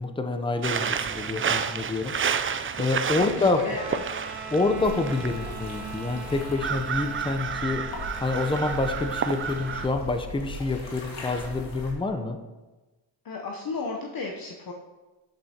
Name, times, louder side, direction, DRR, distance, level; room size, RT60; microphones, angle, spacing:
voice 1, 0.0-2.1 2.8-3.6 4.5-7.8 8.2-12.4, left 3 dB, 10° left, 7 dB, 0.7 m, -27 dB
sound 1, 0.6-9.9, right 7 dB, 30° right, 0.4 m, -31 dB
voice 2, 3.2-4.0 13.2-14.7, left 4 dB, 50° left, 1 dB, 0.9 m, -34 dB
sound 2, 3.7-10.0, right 4 dB, 55° right, 2.3 m, -42 dB
sound 3, 4.6-11.9, left 1 dB, 85° left, 2.0 m, -40 dB
8.8 x 8.5 x 2.9 m, 1.2 s
cardioid pair, 80°, 46 cm